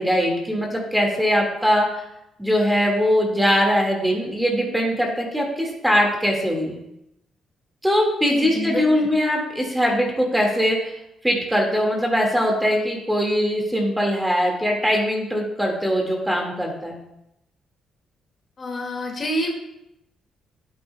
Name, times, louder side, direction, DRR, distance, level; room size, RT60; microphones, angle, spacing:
voice 1, 0.0-2.0 2.4-6.8 7.8-10.9 11.2-17.0, equal, 5° right, 0 dB, 1.9 m, -21 dB
voice 2, 8.3-9.1 18.6-19.5, left 1 dB, 40° left, 1 dB, 2.1 m, -27 dB
11.0 x 8.8 x 2.2 m, 0.83 s
cardioid pair, 90°, 0 cm